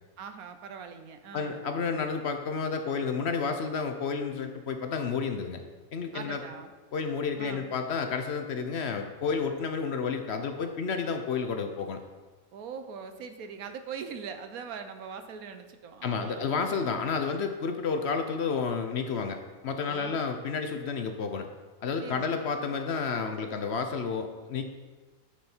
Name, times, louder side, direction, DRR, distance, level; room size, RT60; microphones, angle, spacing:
voice 1, 0.2-1.6 6.1-6.7 7.3-7.7 12.5-16.5 19.9-20.3 22.0-22.3, right 6 dB, 90° right, 8 dB, 1.2 m, -41 dB
voice 2, 1.3-5.6 5.9-6.4 6.9-12.0 16.0-21.5 21.8-24.6, left 5 dB, 55° left, 6 dB, 0.9 m, -31 dB
9.8 x 6.3 x 4.4 m, 1.4 s
omnidirectional pair, 1.5 m